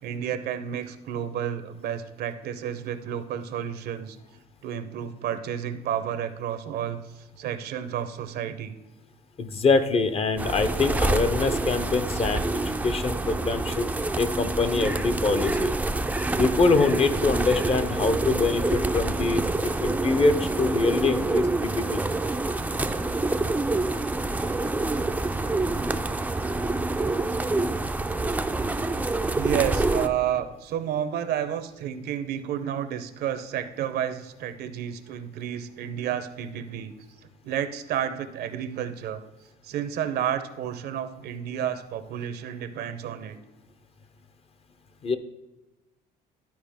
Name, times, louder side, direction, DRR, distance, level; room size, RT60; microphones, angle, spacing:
voice 1, 0.0-4.2 4.6-7.0 7.4-8.7 29.3-36.9 37.4-39.2 39.6-43.4, right 9 dB, 70° right, 10 dB, 0.8 m, -31 dB
voice 2, 9.4-13.9 14.2-15.7 16.4-22.0 27.2-27.4 45.0-45.2, left 4 dB, 35° left, 10 dB, 0.7 m, -24 dB
sound 1, 10.4-30.1, right 2 dB, 10° right, 0.4 m, -27 dB
12.0 x 4.7 x 3.6 m, 1.0 s
cardioid pair, 110°, 17 cm